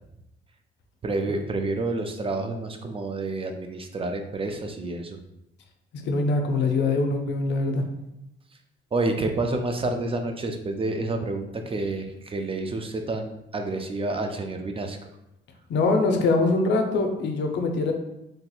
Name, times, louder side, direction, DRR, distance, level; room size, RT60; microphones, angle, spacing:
voice 1, 1.0-5.2 8.9-15.0, right 2 dB, 30° right, 5 dB, 0.3 m, -29 dB
voice 2, 5.9-7.8 15.7-17.9, left 3 dB, 65° left, 4 dB, 0.5 m, -23 dB
3.3 x 2.8 x 2.3 m, 0.88 s
cardioid pair, 90°, 20 cm